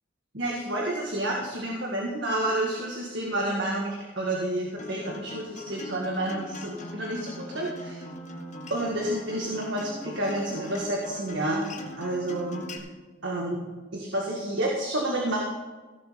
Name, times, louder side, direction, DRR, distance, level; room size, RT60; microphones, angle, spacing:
voice 1, 0.3-8.0 8.7-12.7 13.2-13.6 13.9-15.4, right 1 dB, 65° right, -2 dB, 1.9 m, -29 dB
Acoustic guitar, 4.8-12.8, left 1 dB, 40° left, 1.5 m, -41 dB
16.0 x 7.1 x 5.1 m, 1.3 s
head